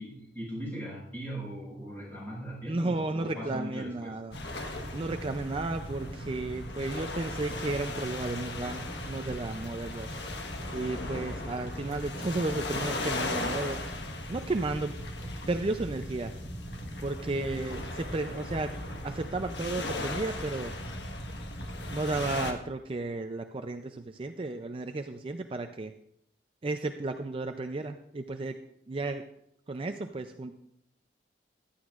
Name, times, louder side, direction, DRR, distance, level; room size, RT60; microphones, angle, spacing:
voice 1, 0.0-4.1, equal, 10° left, -6 dB, 5.3 m, -39 dB
voice 2, 2.7-4.4 4.9-10.1 10.7-13.8 14.3-15.0 15.5-16.3 17.0-18.7 19.0-20.7 21.9-25.9 26.6-28.6 28.9-29.2 29.7-30.5, right 2 dB, 30° right, 7 dB, 0.4 m, -33 dB
sound 1, 4.3-22.5, left 1 dB, 75° left, 1.3 m, -37 dB
15.0 x 11.5 x 2.4 m, 0.75 s
head